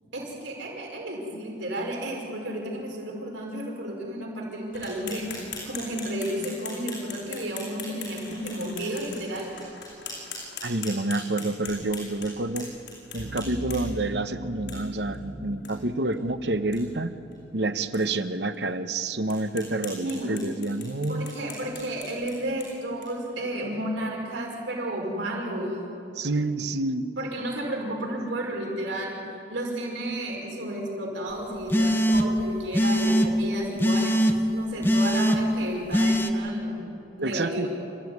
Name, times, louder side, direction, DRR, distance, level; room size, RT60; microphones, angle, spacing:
voice 1, 0.0-5.2 5.7-9.5 20.0-20.3 21.1-26.0 27.2-29.2 29.5-36.9 37.2-37.7, right 1 dB, 85° right, -1 dB, 5.4 m, -32 dB
sound 1, 4.7-14.1 14.7-14.8 15.1-15.2 15.6-15.7 16.1-16.2 16.6-16.8 17.3-17.4 17.9-18.0 18.5-18.6 19.3-23.3, left 4 dB, 80° left, 7.6 m, -40 dB
voice 2, 10.6-12.7 13.1-17.1 17.5-21.4 26.1-27.0 37.2-37.7, right 2 dB, 65° right, 10 dB, 1.0 m, -28 dB
sound 2, 13.2-18.0, equal, 50° right, 1.5 m, -40 dB
sound 3, 31.7-32.4 32.7-33.3 33.8-34.3 34.8-35.4 35.9-36.3, equal, 10° left, 1.0 m, -21 dB
28.5 x 14.5 x 9.6 m, 2.7 s
head